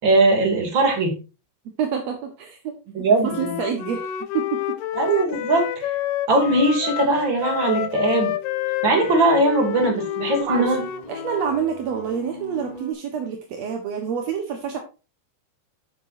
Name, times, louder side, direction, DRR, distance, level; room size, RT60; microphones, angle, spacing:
voice 1, 0.0-1.1 2.9-3.6 5.0-5.9 6.3-8.3 8.8-10.8, right 2 dB, 30° right, 3 dB, 3.0 m, -20 dB
voice 2, 1.8-2.7 3.1-4.1 4.3-4.8 10.4-10.8 11.1-14.8, right 7 dB, 65° right, 4 dB, 1.7 m, -27 dB
Wind instrument woodwind instrument, 3.2-11.7, left 11 dB, 75° left, 2.0 m, -29 dB
sound 1, 6.6-12.9, left 1 dB, 10° right, 2.5 m, -39 dB
11.0 x 9.3 x 2.7 m, 0.31 s
omnidirectional pair, 4.9 m